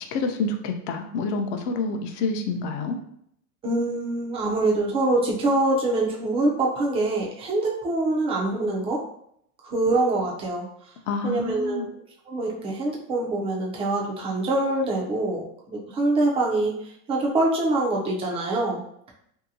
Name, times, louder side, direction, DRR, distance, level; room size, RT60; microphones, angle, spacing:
voice 1, 0.1-3.0 11.1-11.9, left 3 dB, 50° left, 5 dB, 0.5 m, -28 dB
voice 2, 3.6-9.0 9.6-10.7 11.2-11.9 12.3-18.8, right 2 dB, 15° right, -2 dB, 0.3 m, -24 dB
2.8 x 2.7 x 2.6 m, 0.71 s
supercardioid pair, 130°, 45 cm